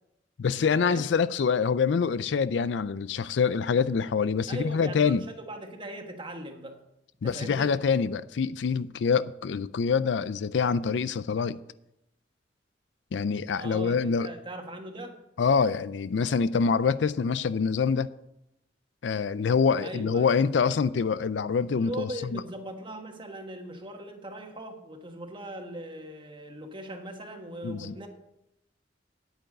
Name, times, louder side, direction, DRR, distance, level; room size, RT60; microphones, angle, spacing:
voice 1, 0.4-5.2 7.2-11.6 13.1-14.3 15.4-18.1 19.0-22.4 27.6-27.9, left 5 dB, 70° left, 0.4 m, -25 dB
voice 2, 4.5-6.8 7.2-7.8 13.6-15.2 19.8-20.4 21.8-28.1, right 1 dB, 30° right, 1.4 m, -39 dB
9.2 x 8.8 x 6.5 m
head